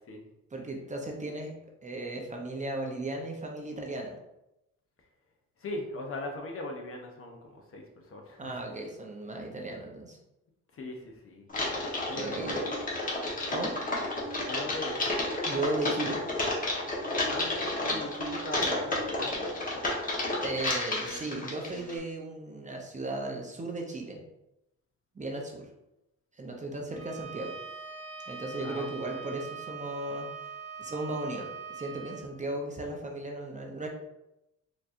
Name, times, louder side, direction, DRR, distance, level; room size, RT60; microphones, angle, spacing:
voice 1, 0.5-1.5 1.8-4.2 8.4-10.2 12.2-12.6 13.5-13.8 15.4-16.2 17.9-18.0 20.4-24.2 25.1-25.7 26.4-27.5 28.3-30.3 30.8-33.9, right 2 dB, 25° right, 1 dB, 0.7 m, -36 dB
voice 2, 5.6-8.6 10.7-11.5 12.1-12.8 14.4-15.2 17.2-19.5 28.6-28.9 29.2-29.3, left 2 dB, 45° left, 2 dB, 0.8 m, -40 dB
Typing, 11.5-22.0, left 1 dB, 25° left, 1.2 m, -31 dB
Bowed string instrument, 26.9-32.2, right 5 dB, 50° right, 1.1 m, -42 dB
4.3 x 2.9 x 2.5 m, 0.89 s
cardioid pair, 90°, 30 cm